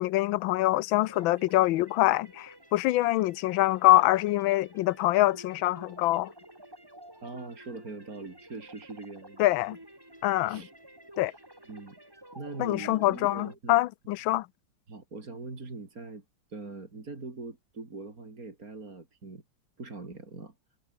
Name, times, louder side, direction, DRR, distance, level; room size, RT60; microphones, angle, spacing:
voice 1, 0.0-6.3 9.4-9.8 10.2-10.6 11.2-11.3 12.6-14.5, left 17 dB, 85° left, 1.4 m, -25 dB
sound 1, 1.0-13.6, right 1 dB, 10° right, 4.1 m, -51 dB
voice 2, 7.2-9.4 10.5-10.7 11.2-11.4 11.7-12.0 12.3-13.8 14.9-16.2 16.5-19.4 19.8-20.5, right 3 dB, 45° right, 4.2 m, -42 dB
omnidirectional pair, 2.1 m